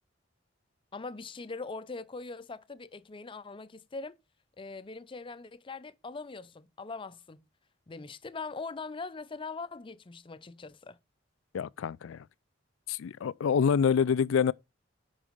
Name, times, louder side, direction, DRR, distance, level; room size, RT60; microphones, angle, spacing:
voice 1, 0.9-4.2 4.6-7.5 7.9-11.0, left 4 dB, 25° left, 0.5 m, -41 dB
voice 2, 11.5-12.2 12.9-14.5, left 7 dB, 90° left, 0.4 m, -26 dB
10.0 x 4.0 x 5.0 m
head